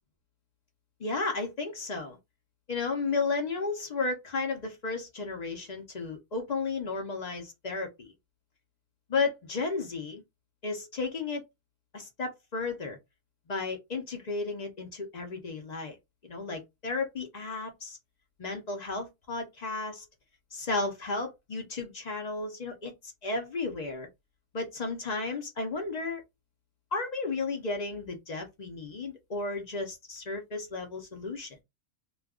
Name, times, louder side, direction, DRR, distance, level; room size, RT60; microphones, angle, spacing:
voice 1, 1.0-2.2 2.7-8.1 9.1-10.2 10.6-11.4 11.9-13.0 13.5-16.0 16.2-18.0 18.4-20.0 20.5-24.1 24.5-26.2 26.9-31.5, left 3 dB, 50° left, 0.5 m, -33 dB
2.3 x 2.2 x 3.5 m
omnidirectional pair, 1.4 m